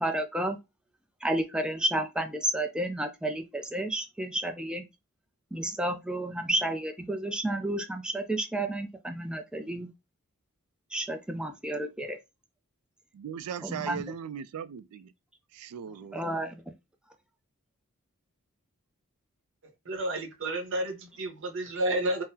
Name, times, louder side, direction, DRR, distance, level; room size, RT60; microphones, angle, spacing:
voice 1, 0.0-0.6 1.2-4.9 5.5-9.9 10.9-12.2 13.6-14.0 16.1-16.6, right 1 dB, 5° right, 0.3 m, -31 dB
voice 2, 13.1-15.1 15.5-16.2, right 8 dB, 85° right, 0.3 m, -38 dB
voice 3, 19.8-22.2, right 1 dB, 60° right, 0.9 m, -31 dB
3.6 x 2.0 x 2.7 m
head